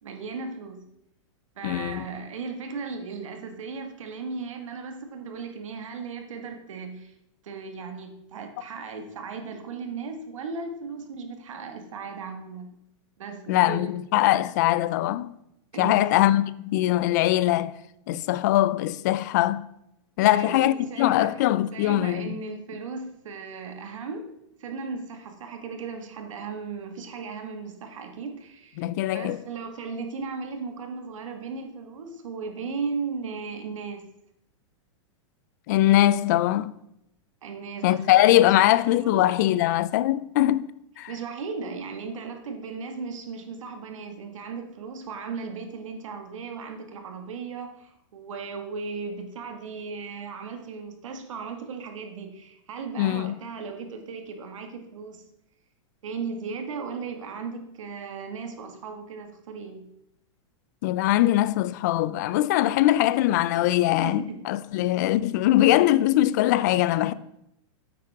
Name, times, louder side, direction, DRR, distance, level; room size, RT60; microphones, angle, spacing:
voice 1, 0.0-0.8 1.5-7.1 7.4-12.8 13.2-13.9 15.7-16.3 20.2-21.3 21.7-24.3 24.6-34.1 37.4-39.3 41.1-55.2 56.0-59.9 63.5-63.6 63.9-64.4, right 5 dB, 85° right, 1.8 m, -36 dB
voice 2, 1.6-2.1 13.5-15.3 15.8-17.8 18.1-19.6 20.2-22.3 28.8-29.4 35.7-36.7 37.8-40.7 41.0-41.1 53.0-53.3 60.8-67.1, left 14 dB, 35° left, 0.3 m, -22 dB
9.6 x 8.5 x 3.5 m
supercardioid pair, 165°, 16 cm